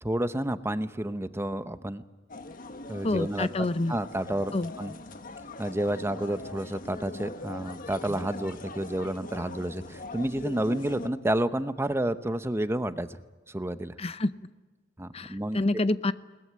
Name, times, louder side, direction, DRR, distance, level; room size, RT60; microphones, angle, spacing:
voice 1, 0.0-2.0 2.9-4.9 5.6-13.2 13.5-13.9 15.0-15.6, right 1 dB, 15° right, 12 dB, 0.8 m, -30 dB
sound 1, 2.3-11.1, left 2 dB, 50° left, 1.4 m, -42 dB
voice 2, 3.0-3.9 4.5-4.7 14.0-14.3 15.1-16.1, left 2 dB, 35° left, 14 dB, 0.7 m, -27 dB
22.0 x 20.0 x 9.6 m, 1.3 s
head